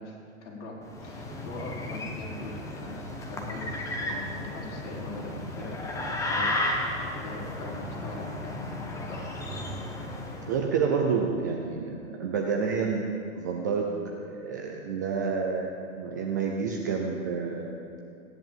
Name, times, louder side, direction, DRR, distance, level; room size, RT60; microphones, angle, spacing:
voice 1, 0.0-6.9 7.1-9.4, left 2 dB, 55° left, -3 dB, 5.2 m, -42 dB
sound 1, 0.8-10.6, left 1 dB, 5° left, 1.0 m, -34 dB
voice 2, 10.5-13.0 13.3-17.7, right 5 dB, 15° right, 1 dB, 0.5 m, -29 dB
17.5 x 11.0 x 7.4 m, 2.6 s
hypercardioid pair, 155°, 41 cm